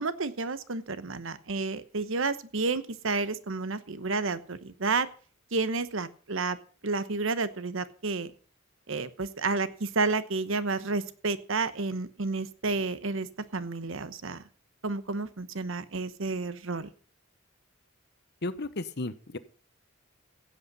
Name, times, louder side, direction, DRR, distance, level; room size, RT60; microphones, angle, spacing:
voice 1, 0.0-5.1 5.5-6.6 6.8-8.3 8.9-13.3 13.5-14.4 14.8-16.9, right 3 dB, 65° right, 14 dB, 1.0 m, -31 dB
voice 2, 18.4-19.4, left 2 dB, 55° left, 14 dB, 1.0 m, -34 dB
15.5 x 8.3 x 5.4 m, 0.41 s
head